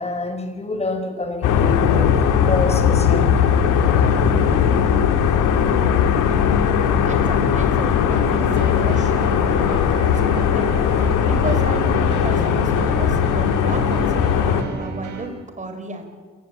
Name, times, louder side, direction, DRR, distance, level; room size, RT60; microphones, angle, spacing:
voice 1, 0.0-2.1 2.4-3.5 3.9-4.5, left 3 dB, 20° left, 7 dB, 4.2 m, -27 dB
sound 1, 1.4-14.6, left 8 dB, 90° left, 2.3 m, -18 dB
voice 2, 7.0-10.7 11.2-16.0, right 2 dB, 25° right, 6 dB, 5.0 m, -32 dB
sound 2, 8.1-15.3, right 5 dB, 75° right, 4.3 m, -33 dB
27.0 x 18.0 x 8.5 m, 1.5 s
cardioid pair, 90°, 30 cm